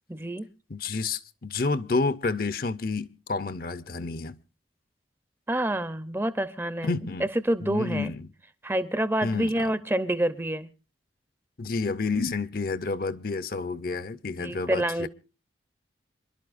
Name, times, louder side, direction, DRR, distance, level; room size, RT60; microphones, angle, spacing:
voice 1, 0.1-0.5 5.5-6.9 7.4-8.1 8.6-10.7 14.4-15.1, right 1 dB, 10° right, 0.6 m, -27 dB
voice 2, 0.7-4.4 6.8-7.3 7.6-8.3 9.2-9.7 11.6-15.1, left 3 dB, 50° left, 0.6 m, -30 dB
27.0 x 11.5 x 2.5 m
head